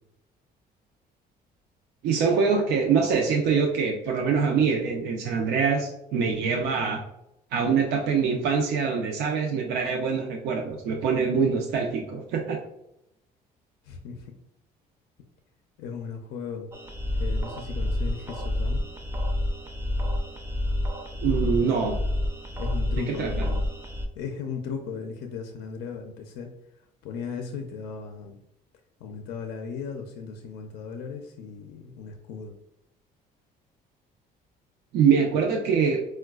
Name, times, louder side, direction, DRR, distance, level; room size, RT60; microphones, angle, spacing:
voice 1, 2.0-7.0 7.5-12.6 21.2-22.0 22.9-23.5 34.9-36.0, right 5 dB, 80° right, 1 dB, 0.5 m, -24 dB
voice 2, 13.9-14.2 15.8-16.7 17.2-18.8 22.6-23.6 24.2-26.5 27.0-28.4 29.0-32.5, left 6 dB, 85° left, 3 dB, 0.4 m, -36 dB
sound 1, 16.7-24.1, left 1 dB, 15° right, 0.4 m, -29 dB
4.5 x 2.2 x 2.3 m, 0.81 s
cardioid pair, 110°, 17 cm